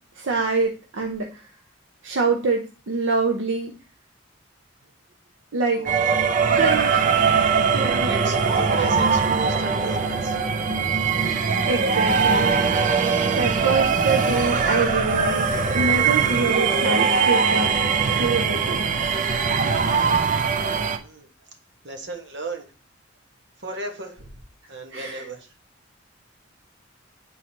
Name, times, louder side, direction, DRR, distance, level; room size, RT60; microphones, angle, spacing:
voice 1, 0.1-1.5 2.0-3.7 5.5-5.8 6.5-6.9 7.3-8.1 11.7-12.5 13.3-17.7 18.2-18.9 24.9-25.2, right 3 dB, 80° right, 2 dB, 0.7 m, -25 dB
voice 2, 5.7-7.0 8.0-10.4 20.9-21.3 21.8-22.7 23.6-24.4 24.7-25.5, right 4 dB, 65° right, 3 dB, 1.3 m, -35 dB
sound 1, 5.9-21.0, right 5 dB, 45° right, 0.6 m, -21 dB
9.2 x 3.9 x 2.9 m, 0.35 s
head